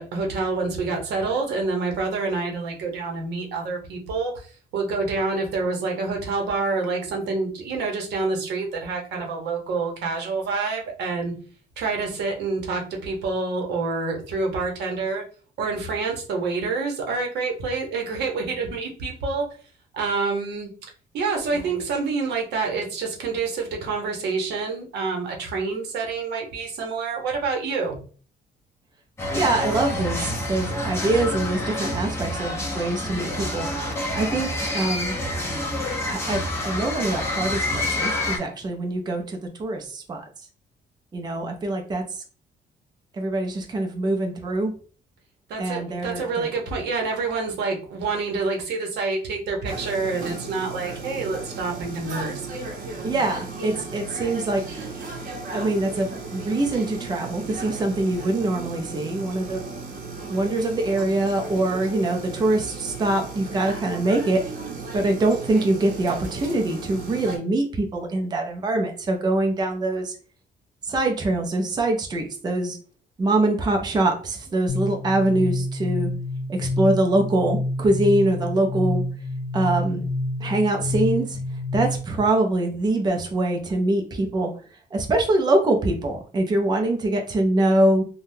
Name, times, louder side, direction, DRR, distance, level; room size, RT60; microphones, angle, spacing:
voice 1, 0.0-11.3 11.8-15.2 15.6-19.5 19.9-20.7 21.1-28.0 45.5-52.5, right 4 dB, 90° right, 2 dB, 1.0 m, -27 dB
sound 1, 29.2-38.4, left 1 dB, 15° left, 0.8 m, -28 dB
voice 2, 29.3-35.1 36.1-40.2 41.1-42.2 43.1-44.7 45.6-46.5 53.0-54.9 55.5-59.6 60.3-64.4 64.9-70.2 70.8-72.8 73.2-76.1 76.5-79.0 79.5-80.0 80.4-81.4 81.7-84.5 84.9-88.0, right 2 dB, 25° right, 3 dB, 0.5 m, -24 dB
sound 2, 49.7-67.4, right 3 dB, 55° right, 0.9 m, -35 dB
sound 3, 74.7-82.2, left 2 dB, 75° left, 0.8 m, -28 dB
3.4 x 2.3 x 2.7 m, 0.40 s
cardioid pair, 135°, 17 cm